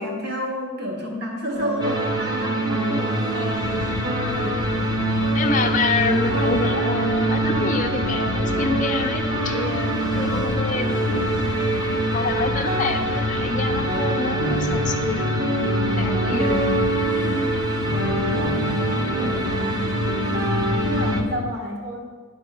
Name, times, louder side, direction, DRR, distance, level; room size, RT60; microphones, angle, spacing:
voice 1, 0.0-3.1 16.3-16.7 17.9-19.9 20.9-22.1, equal, 50° right, -1 dB, 1.8 m, -30 dB
sound 1, 1.5-21.1, right 2 dB, 75° right, 2.2 m, -27 dB
sound 2, 1.8-21.2, right 1 dB, 20° right, 0.7 m, -26 dB
voice 2, 3.3-3.7 4.2-4.6 5.3-11.5 11.9-15.3 16.0-16.6 20.9-21.3, left 4 dB, 35° left, 4 dB, 0.6 m, -27 dB
sound 3, 3.6-21.5, left 6 dB, 80° left, 0.3 m, -32 dB
10.5 x 4.2 x 5.4 m, 1.4 s
head